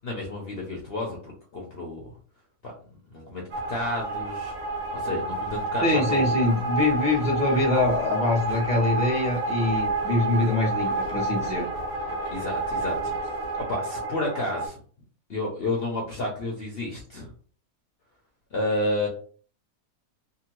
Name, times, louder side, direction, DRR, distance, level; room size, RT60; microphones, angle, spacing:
voice 1, 0.0-2.1 2.6-2.7 3.1-3.4 3.7-4.5 4.9-6.3 12.3-13.1 13.7-14.8 15.3-17.3 18.5-19.1, left 1 dB, 50° left, -1 dB, 0.8 m, -31 dB
sound 1, 3.5-14.7, right 2 dB, 60° right, 1.0 m, -29 dB
voice 2, 5.8-11.7, left 2 dB, 5° right, -2 dB, 0.8 m, -24 dB
2.7 x 2.6 x 2.9 m, 0.42 s
omnidirectional pair, 1.6 m